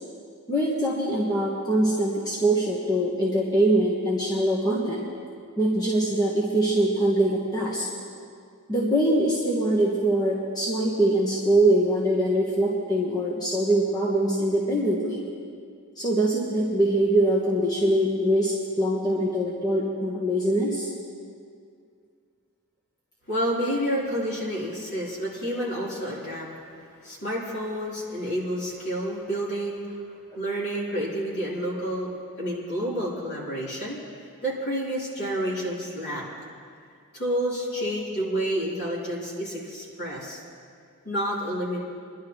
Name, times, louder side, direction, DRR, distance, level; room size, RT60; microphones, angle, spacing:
voice 1, 0.5-5.0 5.6-7.8 8.7-15.2 16.0-20.9 37.8-37.9, right 1 dB, 20° left, -5 dB, 1.4 m, -23 dB
voice 2, 23.3-26.5 27.0-30.0 30.3-32.1 32.4-34.0 34.4-36.2 37.1-40.4 41.0-41.8, equal, 50° left, -6 dB, 3.8 m, -29 dB
26.0 x 11.5 x 3.2 m, 2.3 s
head